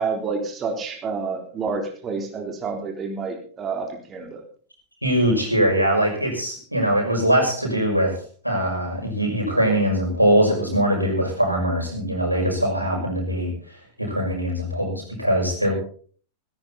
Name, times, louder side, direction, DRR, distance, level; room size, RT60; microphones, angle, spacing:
voice 1, 0.0-4.4, right 4 dB, 25° right, 2 dB, 3.7 m, -29 dB
voice 2, 5.0-8.1 8.4-13.5 14.0-15.7, equal, 90° right, 1 dB, 6.0 m, -22 dB
16.5 x 16.0 x 4.2 m, 0.44 s
figure-of-eight pair, 90°, 0 cm